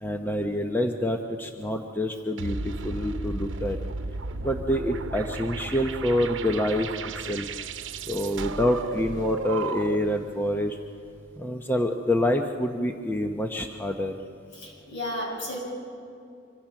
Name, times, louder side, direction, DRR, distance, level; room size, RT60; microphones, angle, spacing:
voice 1, 0.0-3.8 4.4-7.4 8.1-10.8 11.4-14.1, left 1 dB, 10° left, 4 dB, 0.8 m, -27 dB
sound 1, 2.4-10.2, right 3 dB, 80° right, 0.9 m, -34 dB
voice 2, 14.5-15.6, left 1 dB, 65° left, -1 dB, 6.9 m, -33 dB
26.0 x 24.0 x 5.9 m, 2.5 s
head